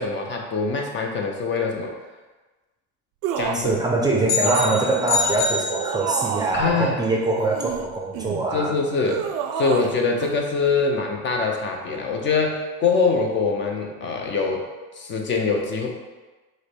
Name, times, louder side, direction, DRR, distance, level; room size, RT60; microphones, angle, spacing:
voice 1, 0.0-1.9 3.4-3.8 6.5-7.0 8.5-14.6 14.9-15.9, left 4 dB, 35° left, 2 dB, 0.6 m, -24 dB
sound 1, 3.2-3.7 4.4-6.7 7.4-8.5 9.1-9.9 10.2-10.4, right 8 dB, 75° right, 0.5 m, -29 dB
voice 2, 3.5-8.8, right 2 dB, 15° right, -2 dB, 0.5 m, -23 dB
sound 2, 4.3-6.5, left 4 dB, 75° left, 0.8 m, -26 dB
4.9 x 2.2 x 4.3 m, 1.2 s
cardioid pair, 125°, 31 cm